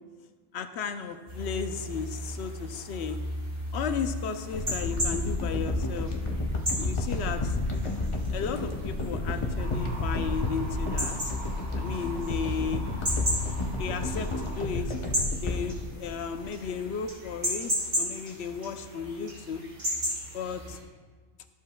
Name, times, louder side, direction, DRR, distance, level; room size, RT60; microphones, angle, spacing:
voice 1, 0.5-3.2 3.7-6.1 6.8-7.6 8.3-11.3 11.8-12.8 13.8-14.9 15.4-19.6 20.3-20.8, left 6 dB, 70° left, 8 dB, 0.8 m, -34 dB
sound 1, 1.3-20.8, equal, 75° right, 2.8 m, -35 dB
sound 2, 4.5-16.7 17.3-17.4, left 2 dB, 30° left, 0.7 m, -31 dB
sound 3, 9.6-14.6, right 2 dB, 55° right, 1.7 m, -44 dB
13.5 x 7.4 x 2.2 m, 1.4 s
omnidirectional pair, 1.3 m